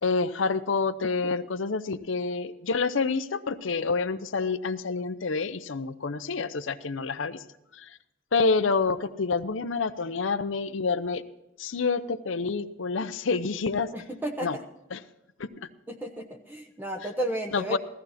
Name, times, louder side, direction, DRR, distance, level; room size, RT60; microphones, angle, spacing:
voice 1, 0.0-7.4 7.7-8.0 8.3-11.2 11.6-13.9 14.4-14.6 14.9-15.0 15.4-15.5 17.5-17.8, left 4 dB, 75° left, 11 dB, 0.7 m, -28 dB
voice 2, 13.9-14.6 15.9-17.8, right 1 dB, 10° right, 3 dB, 0.8 m, -33 dB
16.0 x 14.0 x 4.2 m, 0.92 s
head